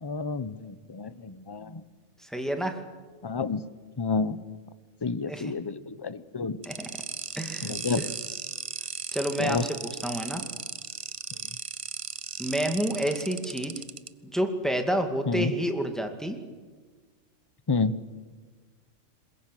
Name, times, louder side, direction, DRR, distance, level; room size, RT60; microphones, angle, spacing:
voice 1, 0.0-1.8 3.2-3.6 4.0-4.4 5.0-6.6 7.6-8.1 9.4-9.7 15.3-15.5 17.7-17.9, left 4 dB, 20° left, 14 dB, 0.7 m, -29 dB
voice 2, 2.2-2.8 5.3-5.5 6.7-6.9 7.4-8.1 9.1-9.7 10.0-10.4 12.4-13.7 14.2-16.4, right 1 dB, ahead, 5 dB, 2.2 m, -29 dB
sound 1, 6.6-14.1, right 5 dB, 35° right, 0.6 m, -36 dB
22.0 x 21.5 x 9.2 m, 1.4 s
omnidirectional pair, 1.4 m